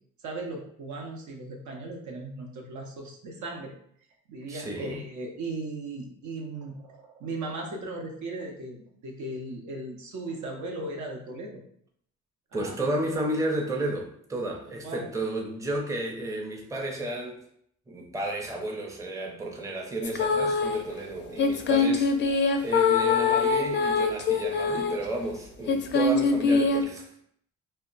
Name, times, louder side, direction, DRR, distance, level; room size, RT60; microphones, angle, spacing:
voice 1, 0.2-3.7 4.3-11.6 12.5-12.8 14.8-15.1, right 2 dB, 75° right, 1 dB, 0.7 m, -37 dB
voice 2, 4.5-5.0 12.5-17.4 17.9-22.1 22.6-27.1, right 1 dB, 10° right, 0 dB, 0.5 m, -32 dB
sound 1, 20.0-20.8 21.4-25.0 25.7-26.8, left 4 dB, 40° left, 0.4 m, -23 dB
2.2 x 2.1 x 3.8 m, 0.66 s
cardioid pair, 90°, 30 cm